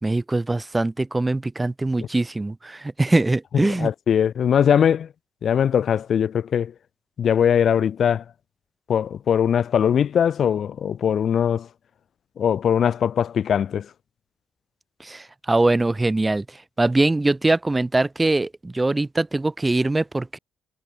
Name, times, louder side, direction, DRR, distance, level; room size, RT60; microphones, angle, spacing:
voice 1, 0.0-3.9 15.0-16.5 16.8-20.4, right 2 dB, 15° right, 2.1 m, -22 dB
voice 2, 3.5-5.1 5.4-6.7 7.2-8.2 8.9-11.7 12.4-13.9, left 8 dB, 60° left, 2.2 m, -21 dB
cardioid pair, 90°, 0 cm